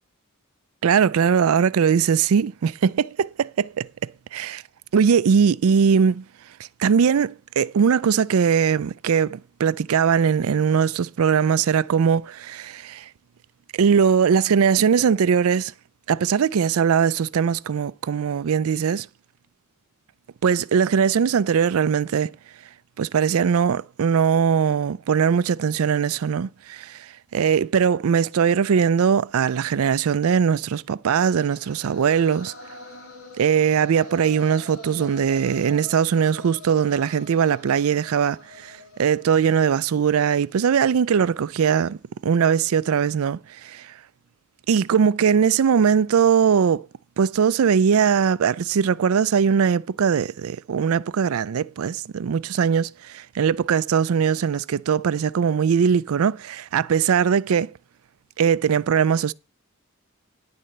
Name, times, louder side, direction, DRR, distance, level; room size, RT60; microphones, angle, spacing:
voice 1, 0.8-3.9 4.3-4.6 4.9-6.2 6.8-13.1 13.7-15.7 16.1-19.1 20.4-22.3 23.0-32.5 33.4-43.9 44.7-46.9 47.2-57.7 58.4-59.3, right 7 dB, 70° right, 0.4 m, -20 dB
sound 1, 31.2-41.3, left 2 dB, 70° left, 2.0 m, -45 dB
11.0 x 4.2 x 7.7 m
head